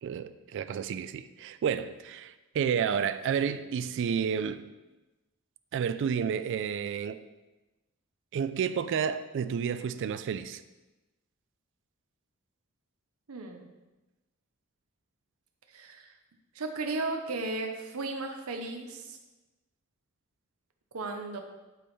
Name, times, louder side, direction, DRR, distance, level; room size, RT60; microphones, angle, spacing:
voice 1, 0.0-4.6 5.7-7.2 8.3-10.6, right 7 dB, 60° right, 12 dB, 0.3 m, -31 dB
voice 2, 13.3-13.7 15.7-16.1 16.5-19.2 20.9-21.4, right 3 dB, 75° right, 4 dB, 0.7 m, -35 dB
8.4 x 4.1 x 3.6 m, 1.1 s
head